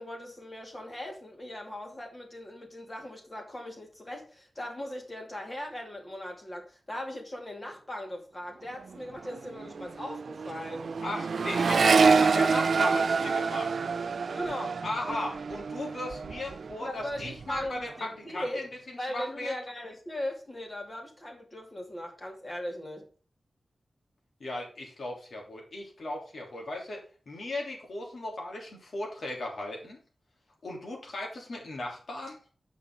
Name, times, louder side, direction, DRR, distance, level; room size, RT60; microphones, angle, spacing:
voice 1, 0.0-10.9 14.3-14.8 16.8-18.6 19.0-23.1, left 1 dB, 25° left, 2.5 m, -39 dB
Accelerating revving vroom, 8.7-9.0 9.2-16.8 17.1-17.7, right 5 dB, 70° right, 0.3 m, -27 dB
voice 2, 11.0-13.8 14.8-18.7 19.1-19.5 24.4-30.0 30.6-32.4, left 1 dB, 65° left, 3.2 m, -36 dB
8.9 x 6.2 x 3.8 m
wide cardioid pair, 130°, 0 cm